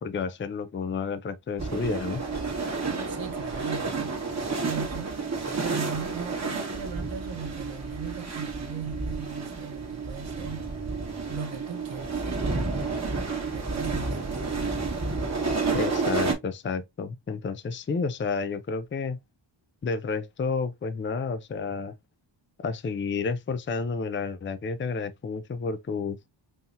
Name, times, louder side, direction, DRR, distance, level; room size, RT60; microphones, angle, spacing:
voice 1, 0.0-2.2 15.7-19.2 19.8-21.9 22.6-26.2, left 4 dB, 25° left, 0.4 m, -30 dB
sound 1, 1.6-16.3, right 4 dB, 35° right, 1.4 m, -30 dB
voice 2, 3.1-4.2 4.6-10.7 11.3-12.4 13.5-14.6, right 6 dB, 70° right, 0.9 m, -38 dB
5.6 x 2.8 x 2.5 m
wide cardioid pair, 155°, 46 cm